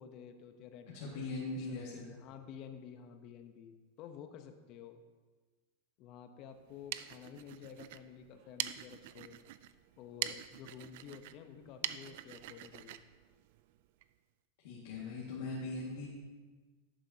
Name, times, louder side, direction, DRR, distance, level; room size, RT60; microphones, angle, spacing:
voice 1, 0.0-5.0 6.0-9.4 10.0-13.0, left 8 dB, 50° left, 8 dB, 0.9 m, -51 dB
voice 2, 0.9-2.1 14.6-16.1, left 3 dB, 70° left, -6 dB, 1.9 m, -40 dB
sound 1, 6.6-14.1, right 13 dB, 65° right, 0.3 m, -44 dB
11.5 x 7.7 x 2.8 m, 1.3 s
hypercardioid pair, 115°, 0 cm